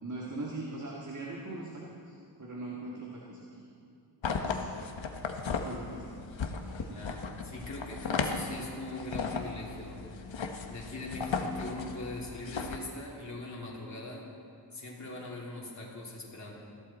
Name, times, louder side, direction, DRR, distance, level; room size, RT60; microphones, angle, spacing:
voice 1, 0.0-3.7 4.4-4.8 5.5-6.2 6.6-7.0, right 2 dB, 40° right, -3 dB, 2.0 m, -41 dB
sound 1, 4.2-12.8, left 5 dB, 70° left, 1.2 m, -36 dB
voice 2, 6.9-10.0 10.7-14.3 14.7-16.5, left 2 dB, 35° left, -4 dB, 3.1 m, -41 dB
21.0 x 15.0 x 4.3 m, 2.5 s
wide cardioid pair, 145°, 47 cm